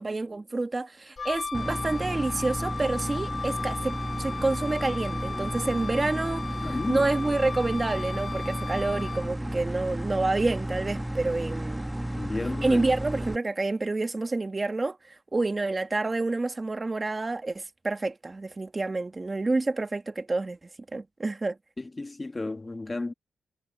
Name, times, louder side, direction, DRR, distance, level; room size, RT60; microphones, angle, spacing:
voice 1, 0.0-11.8 12.6-21.6, right 3 dB, 25° right, 1.7 m, -28 dB
Wind instrument woodwind instrument, 1.2-9.5, left 5 dB, 45° left, 4.4 m, -36 dB
sound 1, 1.5-13.4, right 1 dB, 5° right, 1.0 m, -33 dB
voice 2, 6.6-7.1 12.1-12.8 21.8-23.1, left 2 dB, 25° left, 1.6 m, -32 dB
cardioid pair, 90°, 0 cm